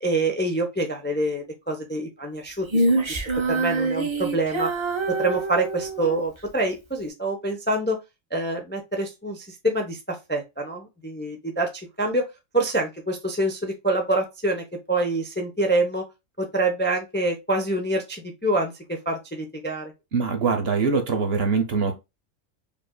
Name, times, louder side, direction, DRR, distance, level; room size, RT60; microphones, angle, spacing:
voice 1, 0.0-3.2 3.5-4.7 5.1-8.0 8.3-12.3 12.5-16.0 16.4-19.9, right 2 dB, 10° left, 0.6 m, -26 dB
Female singing, 2.7-6.2, right 2 dB, 30° right, 0.6 m, -25 dB
voice 2, 20.1-22.0, right 5 dB, 55° right, 1.0 m, -23 dB
5.1 x 2.6 x 2.2 m
omnidirectional pair, 1.3 m